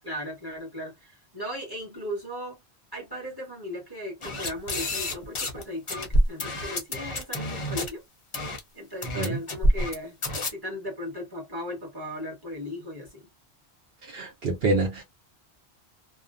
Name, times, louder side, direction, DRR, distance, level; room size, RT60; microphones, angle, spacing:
voice 1, 0.0-2.6 2.9-8.0 8.7-10.2 10.5-13.3, left 1 dB, 20° right, 1.2 m, -37 dB
sound 1, 4.2-5.6 5.9-7.9 8.3-8.6 9.0-9.9 10.2-10.5, equal, 35° left, 0.5 m, -27 dB
voice 2, 14.0-15.0, right 2 dB, 65° right, 0.9 m, -26 dB
2.5 x 2.1 x 2.4 m
omnidirectional pair, 1.1 m